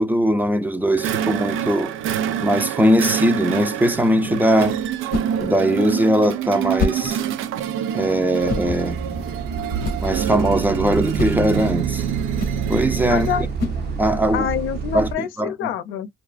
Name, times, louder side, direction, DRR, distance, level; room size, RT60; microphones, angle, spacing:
voice 1, 0.0-1.9 2.4-4.8 5.4-7.2 7.9-9.0 10.0-12.0 12.7-13.3 14.0-14.5 14.9-15.5, equal, 10° right, 0.4 m, -20 dB
sound 1, 1.0-13.5, right 10 dB, 85° right, 0.4 m, -26 dB
sound 2, 4.0-14.3, left 4 dB, 50° left, 0.7 m, -32 dB
Bus, 8.4-15.1, right 5 dB, 55° right, 0.7 m, -29 dB
voice 2, 13.1-13.5 14.3-16.1, left 10 dB, 85° left, 0.6 m, -26 dB
2.4 x 2.3 x 2.4 m
cardioid pair, 90°, 20 cm